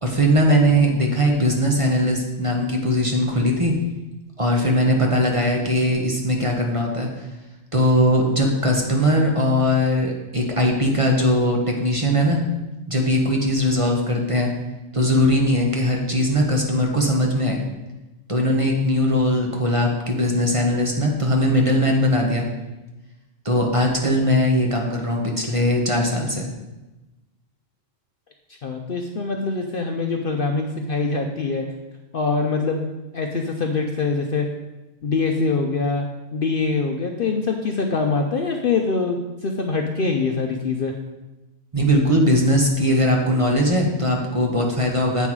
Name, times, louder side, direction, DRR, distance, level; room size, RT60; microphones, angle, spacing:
voice 1, 0.0-3.7 4.4-7.2 7.7-12.4 12.9-14.5 14.9-17.6 18.3-22.5 23.4-26.5 41.7-45.3, equal, 25° right, 0 dB, 1.0 m, -20 dB
voice 2, 28.6-31.6 32.1-34.5 35.0-36.1 36.3-40.9, left 4 dB, 55° left, 3 dB, 0.7 m, -24 dB
8.1 x 5.6 x 4.6 m, 1.1 s
omnidirectional pair, 1.4 m